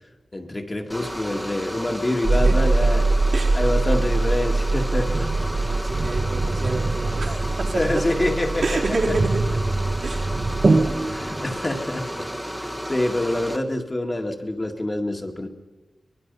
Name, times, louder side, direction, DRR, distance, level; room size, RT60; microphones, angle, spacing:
voice 1, 0.3-3.0 3.5-5.3 7.7-8.6 10.9-12.2 12.6-15.5, left 1 dB, 25° left, 2 dB, 2.1 m, -26 dB
sound 1, 0.9-13.6, equal, 5° right, 1.5 m, -33 dB
sound 2, 2.2-11.6, right 3 dB, 50° right, 1.5 m, -23 dB
voice 2, 2.3-2.9 3.3-3.6 5.5-8.0 8.6-9.4 10.0-10.4, right 3 dB, 70° right, -3 dB, 3.9 m, -29 dB
24.5 x 20.5 x 5.5 m, 1.2 s
wide cardioid pair, 80°, 0 cm